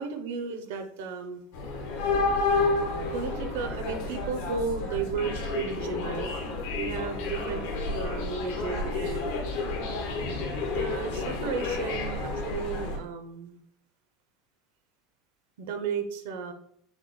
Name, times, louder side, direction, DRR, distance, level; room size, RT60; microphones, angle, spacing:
voice 1, 0.0-1.4 3.1-6.3 6.7-7.6 7.9-9.3 10.7-13.6 15.6-16.5, right 5 dB, 80° right, 7 dB, 0.7 m, -34 dB
sound 1, 1.5-13.0, left 3 dB, 75° left, 1.0 m, -30 dB
6.5 x 2.2 x 3.1 m, 0.69 s
supercardioid pair, 170°, 0 cm